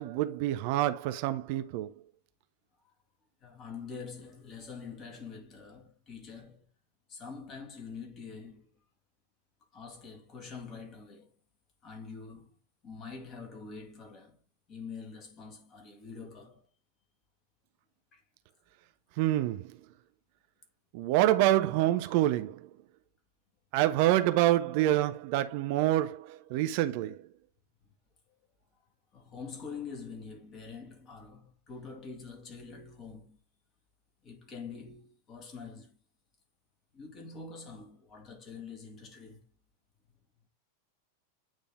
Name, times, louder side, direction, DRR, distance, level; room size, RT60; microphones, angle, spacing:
voice 1, 0.0-1.9 19.2-19.7 20.9-22.7 23.7-27.2, right 14 dB, 45° right, 0.5 m, -27 dB
voice 2, 3.4-6.7 7.1-8.7 9.7-11.3 11.8-12.5 12.8-14.4 14.7-16.6 18.1-18.2 29.1-33.4 34.2-36.0 36.9-39.4, left 5 dB, 30° left, 2.1 m, -45 dB
8.9 x 3.4 x 3.6 m
figure-of-eight pair, 90°, 0 cm